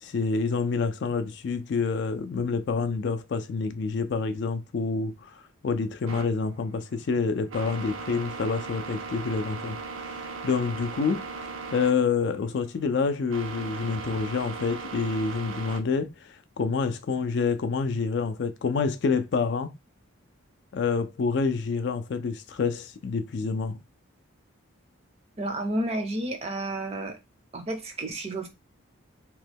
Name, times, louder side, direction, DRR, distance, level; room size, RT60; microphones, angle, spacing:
voice 1, 0.0-5.3 5.6-9.8 10.4-19.7 20.7-23.8, left 4 dB, 55° left, 0.3 m, -27 dB
sound 1, 6.1-15.8, right 4 dB, 75° right, 0.6 m, -38 dB
voice 2, 25.4-27.2 27.5-28.5, right 1 dB, 30° right, 0.5 m, -31 dB
2.9 x 2.2 x 3.3 m
head